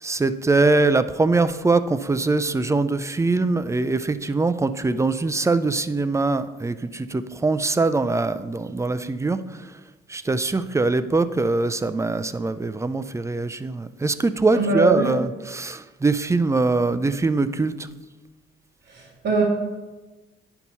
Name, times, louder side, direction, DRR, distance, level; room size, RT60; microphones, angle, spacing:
voice 1, 0.0-9.8 10.1-17.9, right 3 dB, 15° right, 12 dB, 0.4 m, -23 dB
voice 2, 14.5-15.1 18.9-19.4, right 3 dB, 65° right, -7 dB, 2.1 m, -21 dB
9.7 x 4.6 x 5.5 m, 1.2 s
cardioid pair, 90°, 20 cm